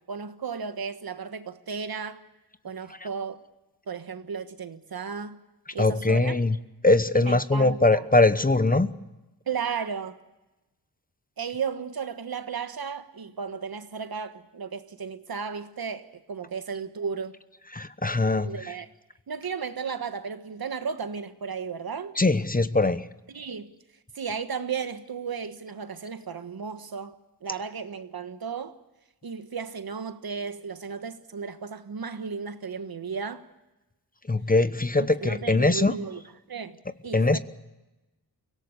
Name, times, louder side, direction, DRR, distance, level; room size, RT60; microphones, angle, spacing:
voice 1, 0.0-2.2 2.6-3.4 3.9-5.4 5.7-6.4 7.1-8.0 9.5-10.2 11.4-17.4 18.4-18.9 19.3-22.2 23.3-23.7 24.1-27.1 27.4-28.8 29.2-33.5 35.0-36.2 36.5-36.8 37.0-37.4, right 6 dB, 60° right, 1.5 m, -34 dB
voice 2, 5.8-6.5 6.8-8.9 17.7-18.5 22.2-23.1 34.3-35.9 37.1-37.4, left 2 dB, 20° left, 0.9 m, -21 dB
24.0 x 17.5 x 8.2 m
cardioid pair, 70°, 40 cm